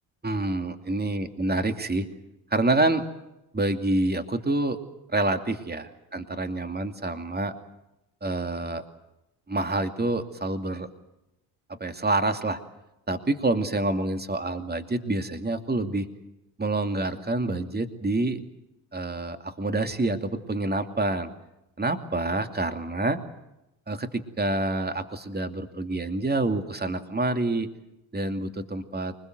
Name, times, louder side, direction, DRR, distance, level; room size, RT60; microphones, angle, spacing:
voice 1, 0.2-2.1 2.5-3.1 3.5-4.8 5.1-7.5 8.2-8.8 9.5-10.9 11.8-12.6 13.1-16.1 16.6-18.4 18.9-21.3 21.8-23.2 23.9-27.7 28.1-29.2, right 2 dB, 20° right, 7 dB, 2.6 m, -27 dB
24.0 x 21.5 x 7.9 m, 0.90 s
supercardioid pair, 65°, 45 cm